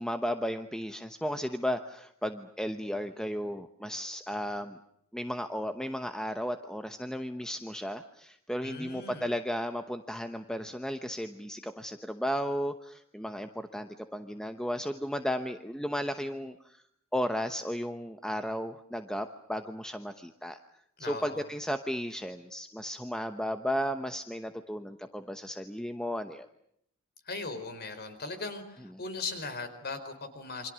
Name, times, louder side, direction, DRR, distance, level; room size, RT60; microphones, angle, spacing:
voice 1, 0.0-4.8 5.1-16.8 17.1-20.6 21.0-26.5, equal, 5° left, 7 dB, 0.9 m, -34 dB
voice 2, 8.6-9.3 21.0-21.5 27.3-30.7, left 3 dB, 45° left, 10 dB, 4.3 m, -39 dB
28.5 x 25.5 x 6.3 m, 0.71 s
head